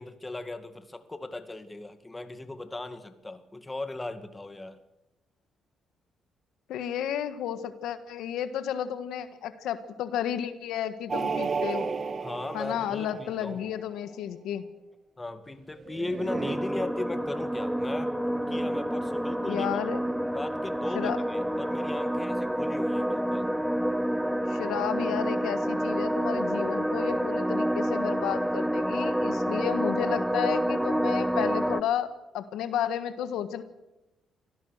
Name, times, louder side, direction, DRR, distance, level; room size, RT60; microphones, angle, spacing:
voice 1, 0.0-4.8 12.2-13.7 15.2-18.1 18.5-19.7 20.3-23.5, left 2 dB, 15° left, 9 dB, 2.1 m, -37 dB
voice 2, 6.7-11.9 12.5-14.6 19.4-20.0 20.9-21.2 24.3-33.6, left 10 dB, 85° left, 11 dB, 1.6 m, -32 dB
sound 1, 11.1-13.7 15.9-16.5, right 5 dB, 40° right, 1.7 m, -33 dB
sound 2, 16.3-31.8, equal, ahead, 1.1 m, -28 dB
25.5 x 16.5 x 6.6 m, 0.97 s
cardioid pair, 90°, 0 cm